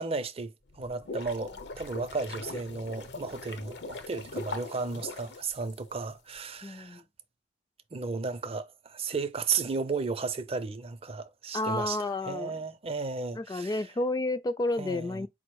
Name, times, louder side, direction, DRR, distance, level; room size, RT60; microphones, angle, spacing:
voice 1, 0.0-7.0 7.9-13.8 14.8-15.3, right 4 dB, 35° right, 0.5 m, -34 dB
sound 1, 0.7-6.1, left 3 dB, 70° left, 0.8 m, -41 dB
voice 2, 6.6-7.0 11.5-12.5 13.3-15.3, left 2 dB, 20° left, 0.3 m, -31 dB
4.7 x 2.1 x 4.6 m
head